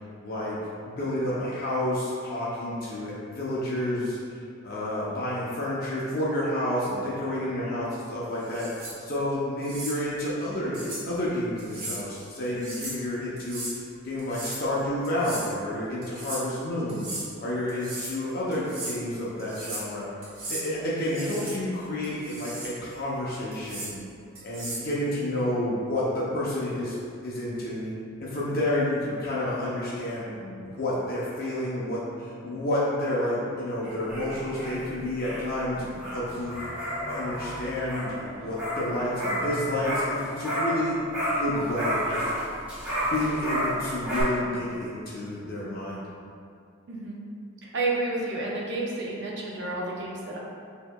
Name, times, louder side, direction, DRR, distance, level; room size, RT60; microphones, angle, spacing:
voice 1, 0.2-0.6 0.8-4.2 4.6-13.6 14.0-17.0 17.4-20.1 20.5-23.9 24.4-27.0 27.2-27.9 28.2-36.7 37.1-41.0 41.3-42.3 43.1-46.0, left 1 dB, 45° left, -7 dB, 0.6 m, -30 dB
sound 1, 8.4-9.0 9.6-10.0 10.7-11.0 11.6-12.0 12.4-13.0 13.4-13.8 14.2-14.7 15.0-15.5 16.0-16.4 16.9-17.3 17.7-18.2 18.5-19.0 19.4-19.9 20.2-20.7 21.1-21.6 22.0-22.7 23.5-23.9 24.4-24.9, right 2 dB, 70° right, 1.4 m, -37 dB
sound 2, 33.8-40.9 41.1-44.2, equal, 5° right, 1.4 m, -31 dB
voice 2, 46.9-47.2 47.6-50.4, right 2 dB, 55° right, -3 dB, 0.6 m, -31 dB
6.4 x 2.8 x 2.2 m, 2.4 s
head